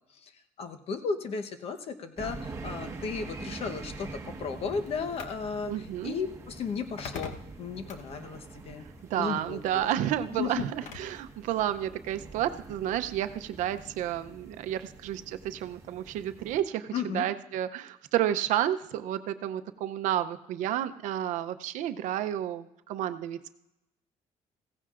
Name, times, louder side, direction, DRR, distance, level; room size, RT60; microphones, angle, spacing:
voice 1, 0.6-8.8 9.2-9.9 10.4-10.7 16.9-17.3, left 5 dB, 50° left, 7 dB, 1.0 m, -35 dB
sound 1, 2.2-16.6, right 3 dB, 25° right, 1.2 m, -45 dB
sound 2, 3.9-11.3, left 5 dB, 75° left, 1.1 m, -47 dB
voice 2, 5.7-6.2 9.1-23.5, right 11 dB, 85° right, 11 dB, 0.6 m, -31 dB
16.0 x 15.5 x 2.5 m, 0.90 s
cardioid pair, 150°, 13 cm